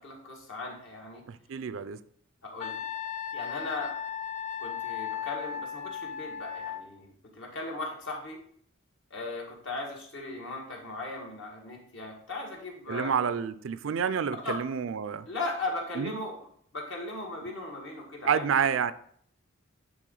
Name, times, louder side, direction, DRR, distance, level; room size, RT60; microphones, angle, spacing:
voice 1, 0.0-1.2 2.4-2.8 3.3-4.0 4.6-8.4 9.1-13.3 14.4-14.6 15.3-16.4 16.7-18.5, left 2 dB, 65° left, 1.9 m, -37 dB
voice 2, 1.3-2.0 12.9-15.3 16.0-16.1 18.2-18.9, right 7 dB, 65° right, 0.4 m, -29 dB
Wind instrument woodwind instrument, 2.6-6.8, left 8 dB, 35° left, 0.4 m, -36 dB
9.2 x 3.8 x 3.9 m
head